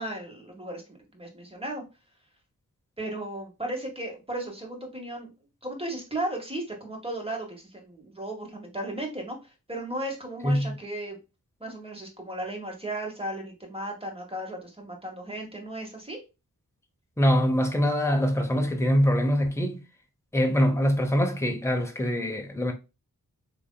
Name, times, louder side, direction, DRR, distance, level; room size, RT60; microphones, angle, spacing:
voice 1, 0.0-1.8 3.0-5.3 5.6-11.2 11.6-16.2, right 1 dB, 15° right, 1.8 m, -35 dB
voice 2, 10.4-10.8 17.2-19.8 20.3-22.7, equal, 5° left, 1.0 m, -24 dB
4.0 x 3.3 x 2.3 m
cardioid pair, 45°, 37 cm